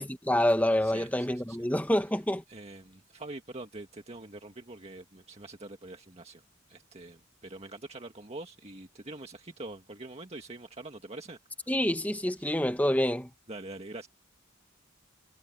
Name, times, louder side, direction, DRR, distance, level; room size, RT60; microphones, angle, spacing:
voice 1, 0.0-2.4 11.7-13.3, left 1 dB, 10° left, 1.6 m, -27 dB
voice 2, 0.8-1.7 2.5-6.4 6.7-11.7 12.4-12.5 13.5-14.1, right 2 dB, 35° right, 1.8 m, -44 dB
head